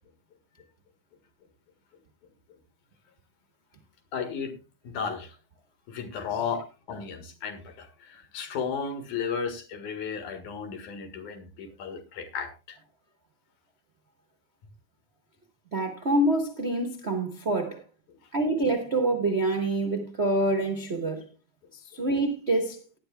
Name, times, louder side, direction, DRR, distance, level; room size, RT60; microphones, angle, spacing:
voice 1, 4.1-4.6 4.8-5.3 5.9-12.8, left 6 dB, 70° left, 3.1 m, -34 dB
voice 2, 15.7-17.8 18.3-21.3 21.7-22.8, right 2 dB, 55° right, 0.7 m, -26 dB
17.5 x 11.0 x 2.3 m
omnidirectional pair, 3.7 m